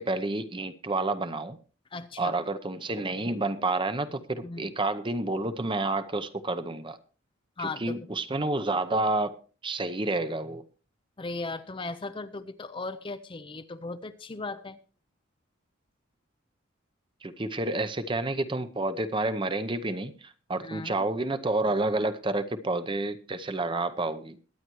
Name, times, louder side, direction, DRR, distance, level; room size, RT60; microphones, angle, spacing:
voice 1, 0.0-1.6 2.2-7.0 7.6-9.3 9.6-10.6 17.2-24.4, right 2 dB, 25° right, 11 dB, 0.7 m, -29 dB
voice 2, 1.9-2.3 4.4-4.7 7.6-8.0 11.2-14.8 20.6-21.1, left 3 dB, 25° left, 11 dB, 0.5 m, -37 dB
22.0 x 9.5 x 3.1 m, 0.38 s
head